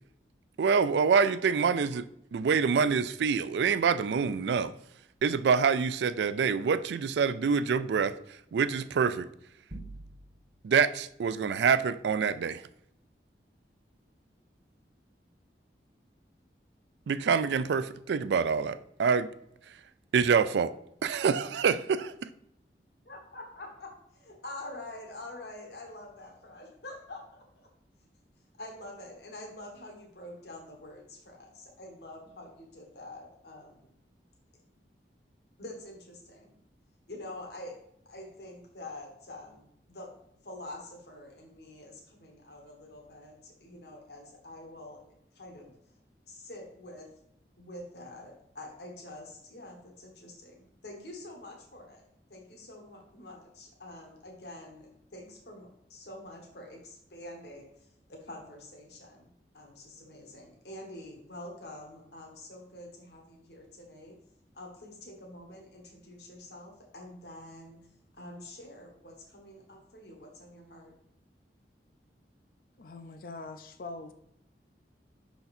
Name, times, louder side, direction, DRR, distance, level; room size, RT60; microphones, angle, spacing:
voice 1, 0.6-2.0 2.3-4.7 5.2-8.1 8.5-9.3 10.6-12.6 17.1-19.3 20.1-20.7 21.0-22.3, right 6 dB, 80° right, 0.3 m, -26 dB
sound 1, 9.7-10.7, right 2 dB, 35° right, 0.8 m, -44 dB
voice 2, 23.0-27.7 28.6-33.9 35.6-36.6 37.1-37.8 38.0-40.1 40.4-45.0 45.3-45.7 46.3-47.1 47.6-57.7 58.1-64.2 64.5-67.8 68.2-70.9, left 1 dB, 75° left, 1.3 m, -46 dB
voice 3, 72.8-74.1, left 3 dB, 50° left, 0.4 m, -42 dB
5.8 x 4.0 x 4.1 m
head